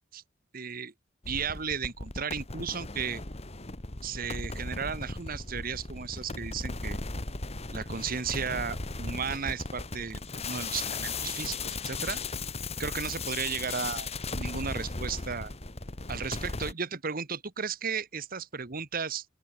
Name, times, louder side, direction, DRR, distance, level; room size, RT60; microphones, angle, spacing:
voice 1, 0.5-0.9 1.3-3.2 4.0-7.0 7.7-12.2 12.8-14.1 14.3-15.5 16.1-19.2, right 6 dB, 50° right, 1.3 m, -34 dB
sound 1, 1.2-16.7, left 3 dB, 35° left, 2.1 m, -37 dB
open air
head